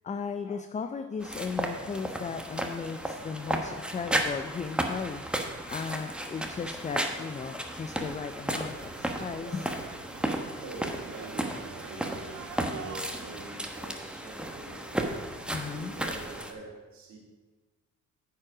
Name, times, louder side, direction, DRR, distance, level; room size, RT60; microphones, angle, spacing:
voice 1, 0.0-5.2 5.7-9.7 15.5-15.9, left 5 dB, 25° left, 8 dB, 0.5 m, -36 dB
sound 1, 1.2-16.5, right 1 dB, 5° right, 1.1 m, -34 dB
sound 2, 8.4-13.6, right 8 dB, 85° right, 0.8 m, -47 dB
voice 2, 10.6-17.2, right 2 dB, 70° right, -1 dB, 2.3 m, -45 dB
9.7 x 7.6 x 4.8 m, 1.3 s
cardioid pair, 90°, 30 cm